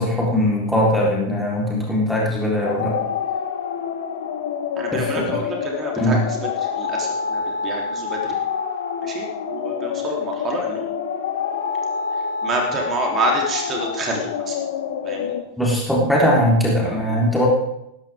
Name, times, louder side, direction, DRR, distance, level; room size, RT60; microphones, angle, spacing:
voice 1, 0.0-3.1 4.9-5.4 6.0-6.2 15.6-17.5, equal, ahead, -5 dB, 3.8 m, -20 dB
sound 1, 2.6-15.4, left 6 dB, 60° left, 2.0 m, -27 dB
voice 2, 4.8-6.2 6.8-8.2 9.0-10.9 12.4-14.5 15.0-15.3, right 2 dB, 25° right, 0 dB, 3.3 m, -27 dB
19.0 x 13.5 x 3.6 m, 0.83 s
figure-of-eight pair, 90°, 0 cm